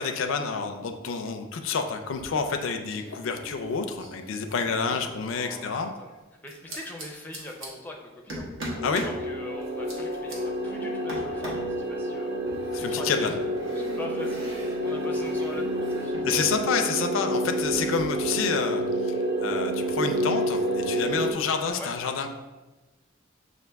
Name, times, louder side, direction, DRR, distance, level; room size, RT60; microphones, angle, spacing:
voice 1, 0.0-5.9 8.8-9.1 12.7-13.3 16.2-19.1 19.4-22.3, left 5 dB, 75° left, 5 dB, 0.4 m, -28 dB
sound 1, 2.0-2.6 2.8-5.5 6.5-7.7 8.3-9.2 9.6-10.4 11.1-11.7 12.5-16.5 16.7-18.0, right 1 dB, 75° right, 1.1 m, -41 dB
voice 2, 4.9-6.1 6.4-8.5 9.0-12.3 12.7-13.4 13.8-16.6 21.8-21.9, left 2 dB, 10° left, 0 dB, 0.4 m, -42 dB
sound 2, 8.6-21.3, right 1 dB, 55° right, 0.5 m, -29 dB
6.1 x 2.5 x 3.4 m, 1.2 s
head